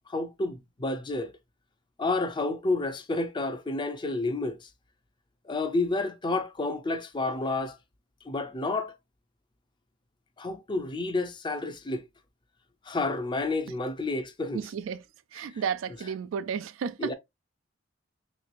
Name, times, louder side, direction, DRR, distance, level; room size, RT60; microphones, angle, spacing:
voice 1, 0.1-1.3 2.0-4.7 5.5-7.8 8.2-8.9 10.4-12.0 12.9-14.6 17.0-17.1, left 2 dB, 25° left, 0.5 m, -30 dB
voice 2, 14.5-15.0 15.3-17.1, right 7 dB, 85° right, 0.3 m, -32 dB
3.3 x 3.1 x 2.4 m
head